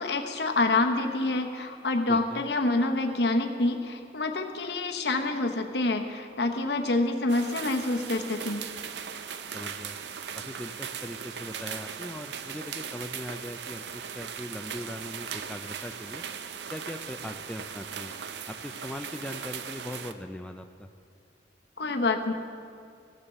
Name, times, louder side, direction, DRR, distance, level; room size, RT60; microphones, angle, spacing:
voice 1, 0.0-8.6 21.8-22.3, left 2 dB, 65° left, 5 dB, 1.0 m, -27 dB
voice 2, 2.1-2.4 9.5-10.0 10.3-16.2 16.7-18.1 18.5-20.9, left 1 dB, 5° left, 5 dB, 0.3 m, -40 dB
sound 1, 7.3-20.1, right 7 dB, 70° right, 0.6 m, -39 dB
15.5 x 7.0 x 6.6 m, 2.4 s
head